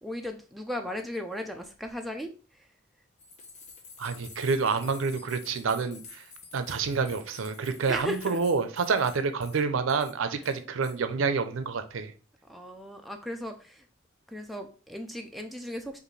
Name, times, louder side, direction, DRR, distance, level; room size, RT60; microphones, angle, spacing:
voice 1, 0.0-2.7 7.9-8.4 10.3-10.4 12.4-13.9 14.3-16.0, equal, ahead, 0.3 m, -37 dB
sound 1, 3.2-9.6 9.9-10.1 10.4-11.0, left 4 dB, 35° left, 0.7 m, -49 dB
voice 2, 4.0-6.2 6.5-12.1, right 5 dB, 80° right, 0.5 m, -28 dB
5.1 x 2.5 x 3.1 m
head